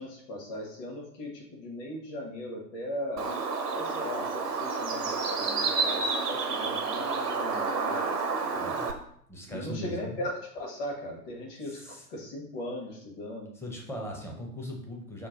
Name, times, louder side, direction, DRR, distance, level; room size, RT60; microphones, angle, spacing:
voice 1, 0.0-3.3 3.7-8.8 9.5-13.5, left 1 dB, 35° left, -1 dB, 1.2 m, -38 dB
Bird, 3.2-8.9, right 4 dB, 90° right, 0.8 m, -30 dB
voice 2, 8.6-8.9 9.3-10.2 11.6-12.1 13.5-15.3, equal, 5° left, 0 dB, 0.6 m, -39 dB
5.8 x 2.1 x 3.8 m, 0.65 s
figure-of-eight pair, 95°, 45 cm